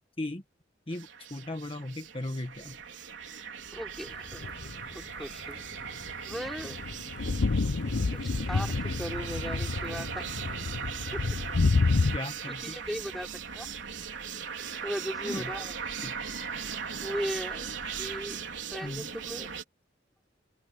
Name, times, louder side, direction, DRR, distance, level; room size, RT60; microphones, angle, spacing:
voice 1, 0.9-2.8 12.1-12.8 15.2-15.5 16.0-16.1 16.6-16.7 18.8-19.1, left 1 dB, 30° left, 1.4 m, -37 dB
sound 1, 0.9-19.6, right 6 dB, 90° right, 3.9 m, -39 dB
voice 2, 3.7-4.4 4.9-5.6 6.3-6.8 8.1-8.2 8.5-10.3 11.1-11.2 12.5-13.3 13.5-13.7 14.8-16.0 17.0-17.7 18.0-18.4 18.7-19.5, equal, ahead, 4.1 m, -37 dB
sound 2, 4.3-4.8 5.7-12.2, left 3 dB, 75° left, 0.7 m, -29 dB
open air
head